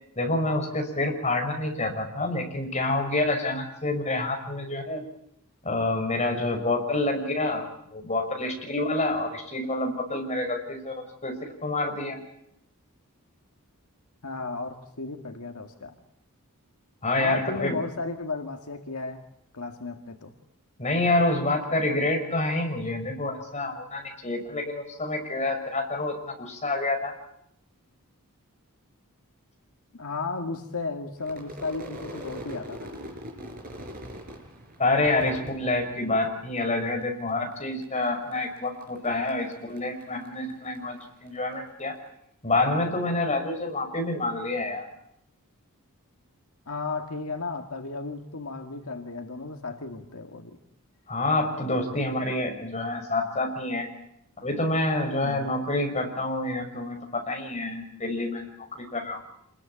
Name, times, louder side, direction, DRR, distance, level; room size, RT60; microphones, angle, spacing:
voice 1, 0.2-5.0 5.6-7.6 7.9-10.9 11.2-12.2 17.0-17.8 20.8-27.1 34.8-41.9 42.4-44.9 51.1-53.9 54.4-58.5 58.7-59.2, left 2 dB, 30° left, 3 dB, 5.8 m, -27 dB
voice 2, 14.2-15.9 17.2-19.2 19.5-20.3 29.9-33.0 46.7-50.6 55.2-55.5, left 3 dB, 75° left, 5 dB, 2.0 m, -34 dB
Crowd / Fireworks, 31.2-36.6 36.9-37.5 37.8-41.4, equal, 40° right, 5.4 m, -42 dB
27.5 x 21.5 x 8.8 m, 0.74 s
head